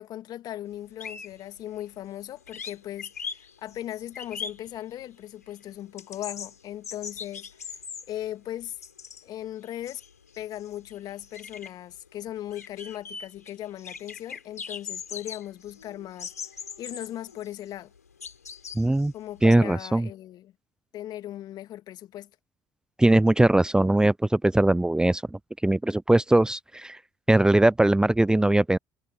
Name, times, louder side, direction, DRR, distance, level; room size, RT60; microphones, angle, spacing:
voice 1, 0.0-7.8 8.1-8.8 9.2-10.0 10.4-16.3 16.8-17.9 19.1-20.5 20.9-22.3, left 12 dB, 55° left, 2.5 m, -38 dB
sound 1, 0.7-2.2 2.5-5.2 5.5-9.3 9.6-19.6, left 6 dB, 85° left, 3.6 m, -41 dB
voice 2, 18.8-19.1 19.4-20.1 23.0-27.0 27.3-28.8, right 1 dB, 10° right, 0.7 m, -21 dB
figure-of-eight pair, 50°, 8 cm